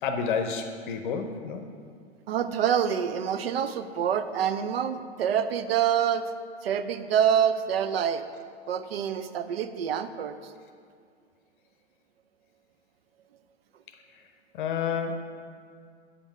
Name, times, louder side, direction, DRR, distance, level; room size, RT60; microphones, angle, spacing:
voice 1, 0.0-1.6 14.5-15.1, left 6 dB, 45° left, 6 dB, 0.7 m, -29 dB
voice 2, 2.3-6.3 6.6-8.2 8.7-10.5, right 8 dB, 60° right, 11 dB, 0.5 m, -26 dB
8.5 x 5.3 x 4.7 m, 2.2 s
figure-of-eight pair, 100°, 34 cm